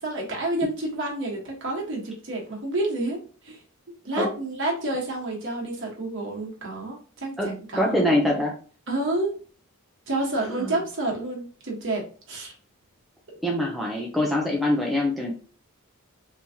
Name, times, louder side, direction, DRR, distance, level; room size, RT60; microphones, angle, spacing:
voice 1, 0.0-3.6 4.0-8.1 8.9-9.3 10.1-12.5, right 2 dB, 55° right, -2 dB, 1.2 m, -29 dB
voice 2, 7.8-8.5 10.4-10.7 13.4-15.3, left 1 dB, ahead, -2 dB, 0.4 m, -24 dB
3.4 x 3.0 x 2.7 m, 0.40 s
head